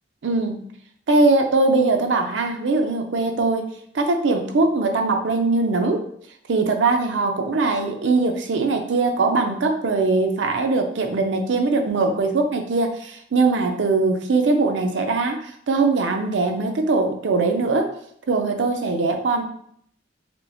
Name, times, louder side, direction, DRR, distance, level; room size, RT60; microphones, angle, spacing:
voice 1, 0.2-0.7 1.1-3.7 3.9-6.0 6.5-17.9 18.3-19.4, right 3 dB, 80° right, 4 dB, 0.5 m, -21 dB
4.3 x 2.0 x 2.7 m, 0.66 s
head